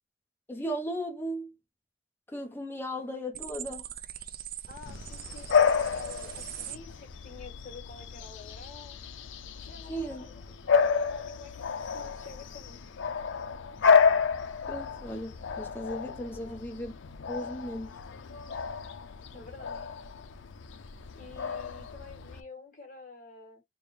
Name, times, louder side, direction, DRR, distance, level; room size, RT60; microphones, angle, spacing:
voice 1, 0.5-1.5 2.3-3.8 9.9-10.3 14.7-16.9 17.3-17.9, equal, 10° left, 0.7 m, -36 dB
sound 1, 3.3-6.8, right 9 dB, 50° right, 0.4 m, -41 dB
voice 2, 4.7-9.0 9.6-10.3 10.6-12.8 16.3-16.6 19.3-19.8 21.1-23.6, left 4 dB, 45° left, 1.5 m, -48 dB
Bark / Bird vocalization bird call bird song, 4.9-22.4, left 6 dB, 75° left, 0.5 m, -30 dB
3.4 x 2.1 x 4.2 m
head